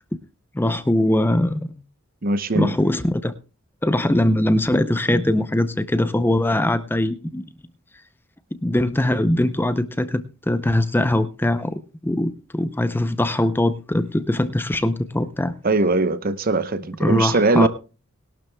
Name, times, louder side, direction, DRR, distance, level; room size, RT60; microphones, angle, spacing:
voice 1, 0.5-1.8 2.5-3.3 3.8-7.4 8.5-11.7 12.0-15.5 17.0-17.7, left 1 dB, 10° left, 0.5 m, -21 dB
voice 2, 2.2-2.7 15.6-17.7, right 2 dB, 45° right, 0.8 m, -20 dB
20.0 x 12.0 x 2.2 m
head